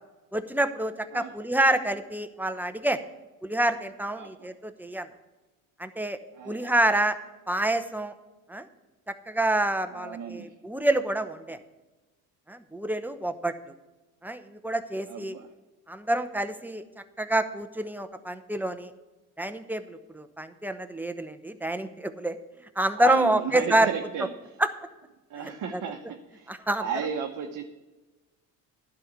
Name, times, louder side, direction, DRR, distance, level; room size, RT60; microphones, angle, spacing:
voice 1, 0.3-3.0 3.4-5.1 5.8-6.2 6.5-7.2 7.5-8.1 8.5-8.7 9.1-11.6 12.5-13.5 14.2-15.3 15.9-16.8 17.2-18.9 19.4-22.4 22.8-23.9 24.6-24.7 25.7-25.8 26.5-26.8, right 1 dB, 5° right, 8 dB, 0.9 m, -27 dB
voice 2, 4.1-4.5 6.3-6.8 9.9-10.5 15.1-15.5 23.0-24.3 25.3-27.6, right 7 dB, 50° right, 3 dB, 1.1 m, -34 dB
11.0 x 5.3 x 8.3 m, 1.1 s
supercardioid pair, 65°, 41 cm